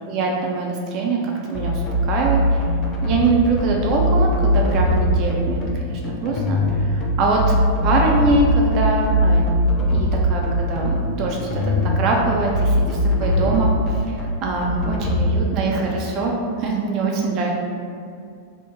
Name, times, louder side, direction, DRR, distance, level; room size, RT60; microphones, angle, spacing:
voice 1, 0.1-2.6 3.0-7.6 7.8-9.4 9.9-14.0 14.4-17.5, right 3 dB, 40° right, -1 dB, 0.4 m, -23 dB
sound 1, 1.5-15.2, equal, 30° left, 0.4 m, -21 dB
3.1 x 2.0 x 3.5 m, 2.2 s
figure-of-eight pair, 90°, 0 cm